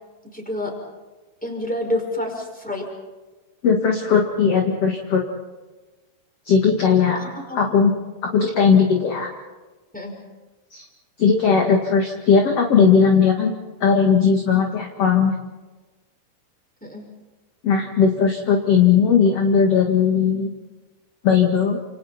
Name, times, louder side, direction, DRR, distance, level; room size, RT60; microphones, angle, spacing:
voice 1, 0.3-0.7 1.4-2.8 7.2-7.6 9.9-10.1 16.8-17.1, left 1 dB, ahead, 0 dB, 5.2 m, -28 dB
voice 2, 3.6-5.2 6.5-7.2 7.5-7.9 8.3-9.3 10.7-10.8 11.2-13.5 13.8-15.3 17.6-20.5 21.2-21.8, left 6 dB, 45° left, 1 dB, 2.4 m, -17 dB
30.0 x 28.0 x 4.4 m, 1.2 s
omnidirectional pair, 4.6 m